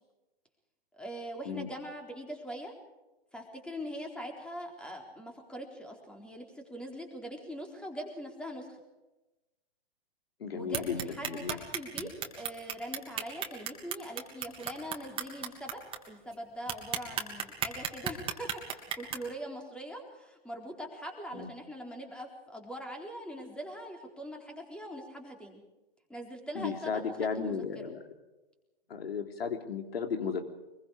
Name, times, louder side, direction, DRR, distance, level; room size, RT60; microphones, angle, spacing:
voice 1, 0.9-2.7 3.3-8.8 10.5-15.8 16.1-25.6 26.1-27.9, equal, 5° left, 2 dB, 4.0 m, -42 dB
voice 2, 10.4-11.6 11.9-12.1 21.3-21.5 26.5-28.0 28.9-30.5, left 6 dB, 70° left, 6 dB, 3.4 m, -35 dB
sound 1, 10.7-16.0 16.3-16.4 16.7-19.2, right 8 dB, 15° right, 3.1 m, -33 dB
24.5 x 22.5 x 5.1 m, 1.0 s
hypercardioid pair, 125°, 31 cm